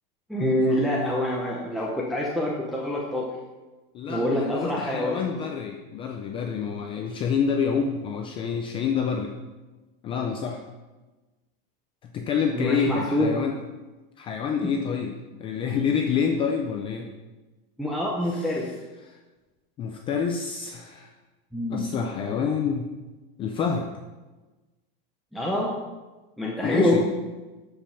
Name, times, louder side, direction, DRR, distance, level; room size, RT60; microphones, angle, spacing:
voice 1, 0.3-3.3 4.1-5.2 12.5-13.4 17.8-18.7 21.5-21.9 25.3-25.7 26.4-27.0, left 1 dB, ahead, -5 dB, 0.7 m, -25 dB
voice 2, 3.9-9.3 10.0-10.6 12.1-13.6 14.2-17.1 18.3-18.5 19.0-19.2 19.8-21.1 21.7-22.9 23.4-23.9 26.6-27.0, left 6 dB, 20° left, 3 dB, 0.4 m, -27 dB
12.0 x 5.1 x 5.7 m, 1.2 s
supercardioid pair, 180°, 29 cm